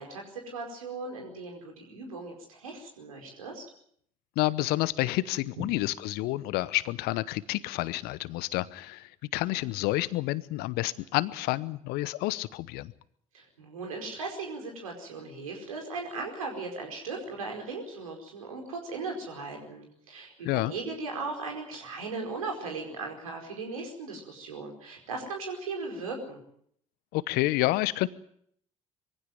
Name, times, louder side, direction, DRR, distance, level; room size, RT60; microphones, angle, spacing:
voice 1, 0.0-3.6 13.3-26.4, right 3 dB, 85° right, 2 dB, 4.9 m, -38 dB
voice 2, 4.4-12.9 20.4-20.7 27.1-28.1, left 18 dB, 65° left, 19 dB, 0.9 m, -29 dB
22.5 x 15.5 x 9.3 m, 0.66 s
figure-of-eight pair, 55°, 18 cm